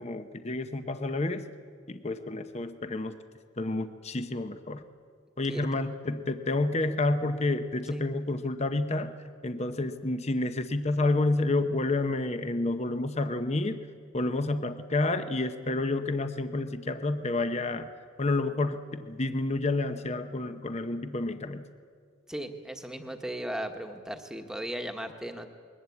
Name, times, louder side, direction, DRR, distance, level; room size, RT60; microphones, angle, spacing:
voice 1, 0.0-1.4 1.9-3.1 3.6-4.8 5.4-9.1 9.4-13.8 14.1-17.9 18.2-21.6, left 2 dB, 35° left, 9 dB, 0.9 m, -29 dB
voice 2, 22.3-25.5, right 1 dB, 5° right, 4 dB, 1.3 m, -36 dB
22.0 x 20.0 x 8.5 m, 2.1 s
head